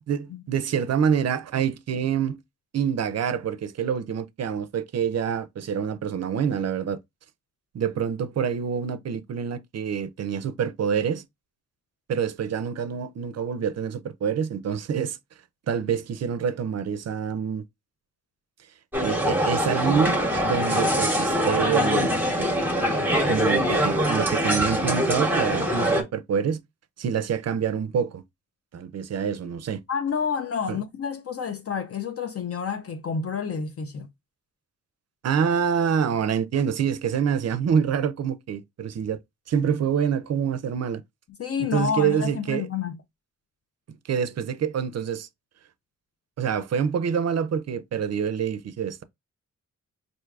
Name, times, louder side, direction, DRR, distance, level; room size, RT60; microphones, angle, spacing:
voice 1, 0.1-2.4 2.7-7.0 7.7-11.2 12.1-15.2 15.7-17.6 19.0-22.3 22.8-22.9 23.2-26.6 27.0-28.2 28.7-29.8 30.7-30.8 35.2-39.2 39.5-41.0 41.6-42.7 44.1-45.3 46.4-49.0, right 7 dB, 60° right, 0.4 m, -26 dB
sound 1, 18.9-26.0, equal, 5° right, 1.0 m, -23 dB
voice 2, 29.9-34.1 41.4-43.0, left 6 dB, 50° left, 0.4 m, -29 dB
4.5 x 2.6 x 2.3 m
wide cardioid pair, 145°, 30 cm